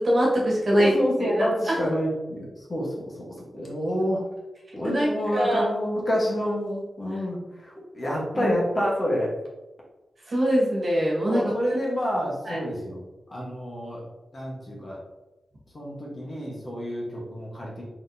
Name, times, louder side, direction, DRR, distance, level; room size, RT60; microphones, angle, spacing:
voice 1, 0.0-0.9 1.2-1.7 4.8-5.6 8.3-8.6 10.3-11.5 12.4-12.6, equal, 45° right, -5 dB, 1.5 m, -24 dB
voice 2, 0.7-2.9 3.5-4.2 4.7-9.3 11.3-13.0 13.3-14.0 14.3-15.0 15.7-17.8, equal, 35° left, -3 dB, 1.3 m, -28 dB
4.4 x 4.0 x 2.7 m, 1.0 s
wide cardioid pair, 130°, 0 cm